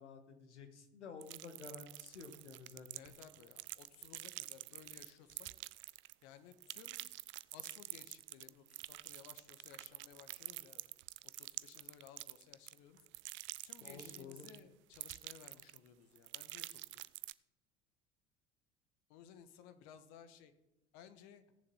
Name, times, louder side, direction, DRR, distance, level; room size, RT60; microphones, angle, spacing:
voice 1, 0.0-3.1 13.8-14.5, left 5 dB, 75° left, 6 dB, 1.9 m, -52 dB
sound 1, 1.2-6.2 6.5-14.6 14.9-15.9 16.2-17.3, right 19 dB, 35° right, 0.4 m, -48 dB
voice 2, 2.9-5.5 6.2-7.1 7.5-10.9 11.2-13.0 13.6-16.8 19.1-20.5 20.9-21.4, left 9 dB, 50° left, 10 dB, 1.5 m, -58 dB
17.0 x 7.1 x 5.6 m, 0.91 s
figure-of-eight pair, 70°, 35 cm